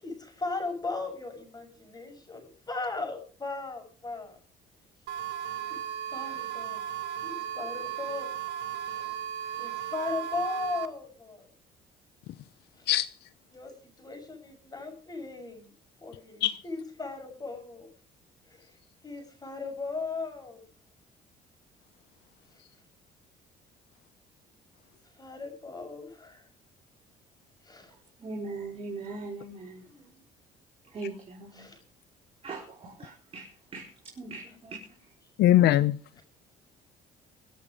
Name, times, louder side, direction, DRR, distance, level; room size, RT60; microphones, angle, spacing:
voice 1, 0.0-4.4 5.7-5.8 6.1-6.8 7.2-8.3 8.9-9.1 9.6-11.5 13.5-13.7 14.0-15.7 16.0-17.9 18.5-18.6 19.0-20.6 25.2-26.4 27.6-27.9 29.8-30.1 31.6-31.8, left 3 dB, 25° left, 6.5 m, -37 dB
sound 1, 5.1-10.9, right 10 dB, 80° right, 1.4 m, -36 dB
voice 2, 28.2-29.9 30.9-31.7 32.4-33.9 34.2-34.8, right 3 dB, 35° right, 4.9 m, -40 dB
voice 3, 35.4-36.0, left 13 dB, 75° left, 0.8 m, -20 dB
25.0 x 8.4 x 5.1 m
cardioid pair, 110°, 17 cm